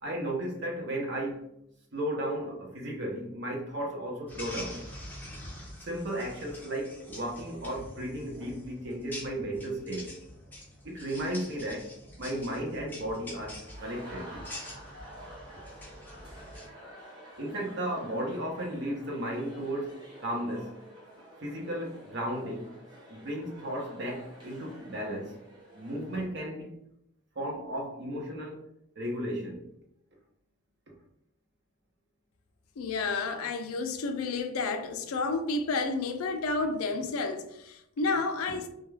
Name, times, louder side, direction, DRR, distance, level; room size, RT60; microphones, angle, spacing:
voice 1, 0.0-1.4 1.9-4.9 5.8-10.1 10.8-14.4 17.4-20.8 21.4-22.7 23.1-25.4 25.7-26.7 27.3-28.6 29.0-29.6, right 1 dB, 55° right, 0.7 m, -34 dB
sound 1, 4.3-16.7, left 1 dB, 10° left, 0.5 m, -45 dB
sound 2, 13.5-26.3, right 1 dB, 20° right, 0.8 m, -49 dB
voice 2, 32.8-38.7, left 3 dB, 75° left, 0.4 m, -31 dB
2.3 x 2.2 x 3.1 m
head